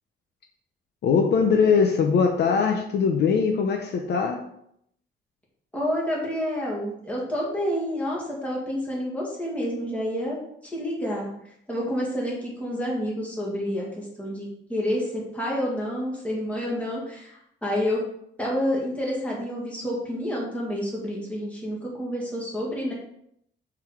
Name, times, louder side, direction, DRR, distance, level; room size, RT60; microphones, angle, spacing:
voice 1, 1.0-4.4, left 5 dB, 55° left, 3 dB, 0.7 m, -21 dB
voice 2, 5.7-10.4 10.7-11.3 11.7-18.0 18.4-22.9, equal, 5° left, -4 dB, 1.9 m, -29 dB
7.4 x 4.0 x 4.9 m, 0.73 s
cardioid pair, 175°, 21 cm